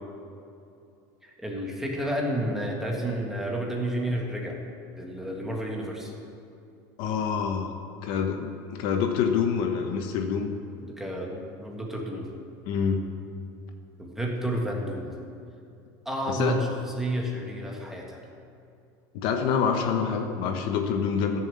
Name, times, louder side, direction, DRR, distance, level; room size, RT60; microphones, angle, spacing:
voice 1, 1.2-4.6 4.9-6.1 10.8-12.3 14.0-15.1 16.1-18.2, right 1 dB, 5° right, -1 dB, 1.7 m, -31 dB
voice 2, 7.0-7.7 8.0-10.5 12.7-13.0 16.3-16.6 19.1-21.4, left 6 dB, 55° left, 5 dB, 1.1 m, -26 dB
14.5 x 7.2 x 7.8 m, 2.6 s
cardioid pair, 165°, 10 cm